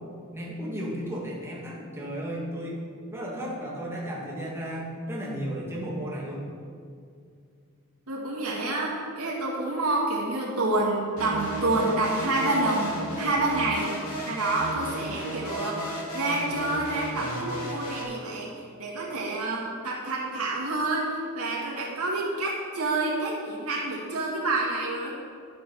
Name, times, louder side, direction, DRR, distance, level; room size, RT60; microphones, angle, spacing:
voice 1, 0.3-2.8 3.1-6.5, equal, 10° right, -4 dB, 2.0 m, -34 dB
voice 2, 8.1-13.9 14.3-18.5 18.8-25.1, right 2 dB, 80° right, -4 dB, 2.0 m, -28 dB
sound 1, 11.2-18.0, equal, 85° left, 2.8 m, -34 dB
11.0 x 6.9 x 5.5 m, 2.2 s
head